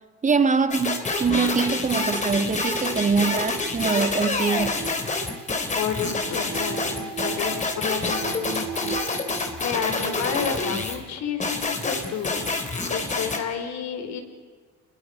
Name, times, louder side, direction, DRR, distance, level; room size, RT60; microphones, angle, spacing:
voice 1, 0.2-4.7, right 5 dB, 25° right, 1.6 m, -23 dB
sound 1, 0.7-11.0 11.4-13.4, left 3 dB, 25° left, 3.3 m, -27 dB
sound 2, 3.6-10.3, right 8 dB, 70° right, 2.5 m, -38 dB
voice 2, 5.7-9.3 9.6-12.4 12.9-14.2, left 7 dB, 65° left, 4.1 m, -31 dB
29.0 x 22.0 x 5.2 m
cardioid pair, 120°, 30 cm